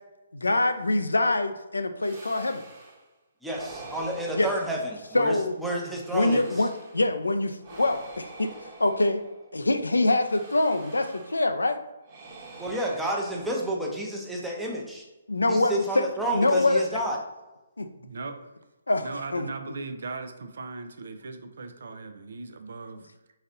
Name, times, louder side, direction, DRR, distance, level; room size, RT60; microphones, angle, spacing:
voice 1, 0.3-2.6 4.4-4.5 5.1-5.6 6.1-8.5 8.8-9.2 9.5-11.8 15.3-16.0 16.3-16.8 17.8-17.9 18.9-19.5, left 2 dB, 90° left, 8 dB, 0.4 m, -24 dB
sound 1, 2.0-3.1 3.5-5.5 5.9-7.1 7.6-9.6 10.2-11.6 12.0-14.2, right 3 dB, 40° right, 1.1 m, -46 dB
voice 2, 3.4-6.6 12.6-15.0 15.5-17.2, right 1 dB, 5° right, -2 dB, 0.7 m, -30 dB
voice 3, 17.9-18.4 19.0-23.1, right 3 dB, 65° right, 7 dB, 0.5 m, -38 dB
4.0 x 4.0 x 2.6 m, 1.1 s
figure-of-eight pair, 140°, 0 cm